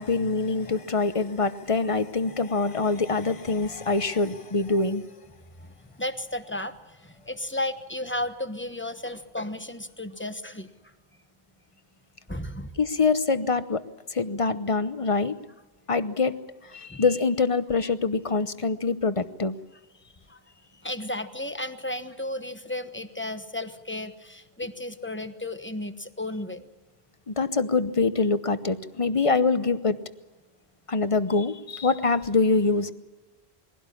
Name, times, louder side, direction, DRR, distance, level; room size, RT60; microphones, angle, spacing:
voice 1, 0.0-5.1 12.8-13.8 14.1-15.4 15.9-16.4 16.7-19.5 27.3-30.0 30.9-32.9, left 4 dB, 35° left, 12 dB, 0.9 m, -24 dB
voice 2, 5.9-10.7 12.3-12.7 16.9-17.0 20.3-20.4 20.8-26.7, left 1 dB, 10° left, 9 dB, 1.1 m, -34 dB
22.0 x 17.0 x 10.0 m, 1.2 s
omnidirectional pair, 1.1 m